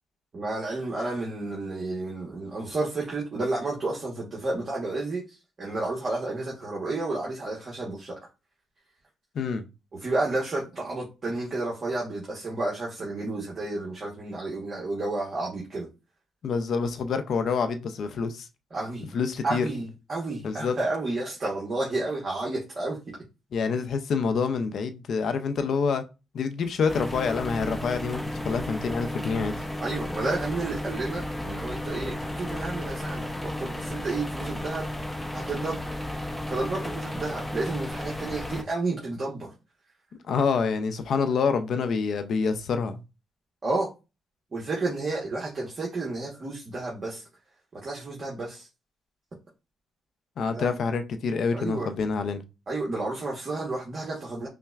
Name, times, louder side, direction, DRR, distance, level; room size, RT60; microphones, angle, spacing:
voice 1, 0.3-8.2 10.0-15.9 18.7-19.2 19.4-23.0 29.8-35.8 36.5-39.5 43.6-43.9 44.5-47.2 47.7-48.7 50.5-50.8 51.5-51.9 52.7-54.5, right 2 dB, 40° right, 1.1 m, -31 dB
voice 2, 16.4-18.5 19.1-19.7 20.4-20.7 23.5-26.0 26.3-29.6 40.3-43.0 50.4-52.4, left 5 dB, 60° left, 0.5 m, -27 dB
sound 1, 26.9-38.6, left 1 dB, 10° left, 0.7 m, -33 dB
5.6 x 2.2 x 2.3 m
cardioid pair, 90°, 0 cm